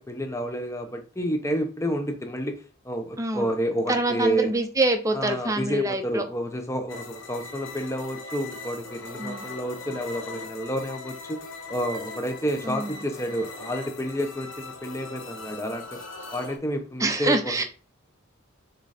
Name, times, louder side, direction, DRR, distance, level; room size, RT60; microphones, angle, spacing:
voice 1, 0.0-2.6 2.8-4.5 5.1-11.4 11.7-16.0 16.3-17.6, equal, 15° left, 4 dB, 0.9 m, -30 dB
voice 2, 3.2-3.5 3.9-6.2 9.2-9.5 12.6-13.0 17.0-17.6, right 2 dB, 15° right, 5 dB, 0.8 m, -25 dB
sound 1, 6.9-16.6, left 3 dB, 70° left, 1.3 m, -40 dB
6.8 x 3.8 x 4.3 m, 0.36 s
head